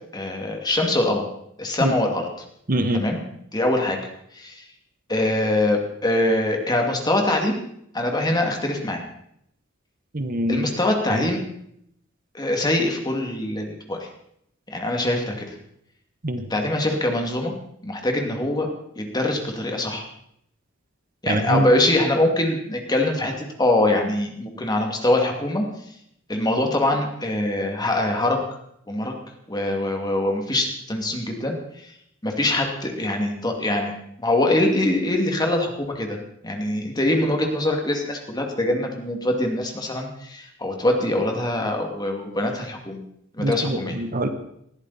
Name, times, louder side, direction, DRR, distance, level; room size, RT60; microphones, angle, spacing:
voice 1, 0.1-1.2 1.6-2.2 2.9-3.2 3.5-4.0 4.3-4.6 5.1-7.6 7.9-9.0 10.5-11.4 12.3-14.1 14.7-15.5 16.5-17.5 17.8-18.7 19.0-20.1 21.2-25.6 26.3-28.4 28.9-29.1 29.5-31.6 32.2-36.2 36.4-43.0 43.4-44.0, left 1 dB, 20° left, 2 dB, 2.4 m, -23 dB
voice 2, 2.7-3.1 10.1-10.6 11.1-11.3 16.2-16.5 21.3-21.7 43.4-44.3, right 1 dB, 45° right, 8 dB, 1.2 m, -24 dB
20.0 x 14.0 x 4.2 m, 0.72 s
head